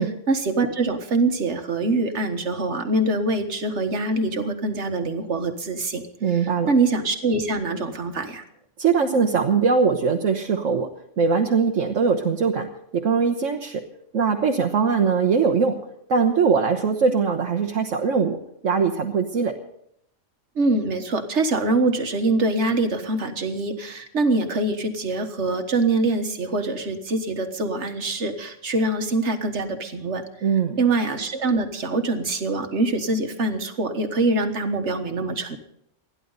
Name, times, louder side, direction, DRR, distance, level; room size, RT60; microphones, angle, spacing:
voice 1, 0.3-8.4 20.6-30.2 30.8-35.6, right 2 dB, 65° right, 6 dB, 1.8 m, -24 dB
voice 2, 6.2-6.7 8.8-10.9 11.2-12.7 12.9-13.8 14.1-15.8 16.1-18.4 18.6-19.5 30.4-30.8, right 5 dB, 90° right, 2 dB, 1.5 m, -21 dB
29.5 x 11.0 x 4.1 m, 0.74 s
omnidirectional pair, 1.3 m